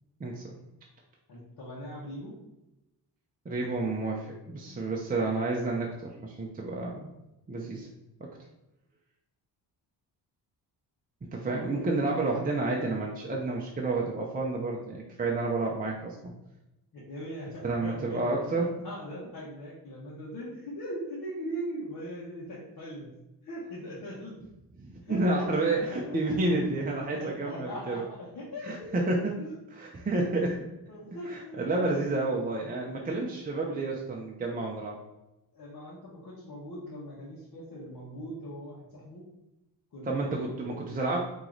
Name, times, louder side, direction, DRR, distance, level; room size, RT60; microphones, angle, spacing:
voice 1, 0.2-0.5 3.5-7.1 7.5-7.9 11.2-16.3 17.6-18.7 24.8-28.0 28.6-29.3 29.8-30.7 31.3-35.0 40.0-41.2, right 2 dB, 20° right, -1 dB, 0.6 m, -30 dB
voice 2, 1.3-2.3 16.9-23.1 23.4-24.4 25.0-25.5 25.7-26.5 27.1-29.5 30.9-31.6 35.5-39.3 39.9-40.6, equal, 50° left, -7 dB, 1.4 m, -40 dB
4.6 x 3.0 x 3.9 m, 0.94 s
cardioid pair, 115°, 42 cm